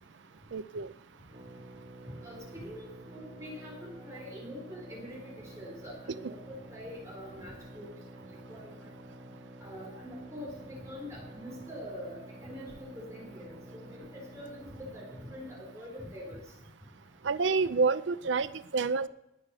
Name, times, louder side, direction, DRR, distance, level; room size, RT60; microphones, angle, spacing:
voice 1, 0.5-0.9 17.2-19.1, right 4 dB, 70° right, 14 dB, 0.5 m, -28 dB
sound 1, 1.3-15.8, equal, 30° right, 4.9 m, -50 dB
voice 2, 2.2-6.4 6.7-7.9 8.5-8.7 9.6-16.4, equal, 15° right, -3 dB, 4.0 m, -44 dB
19.5 x 6.7 x 6.9 m, 0.88 s
head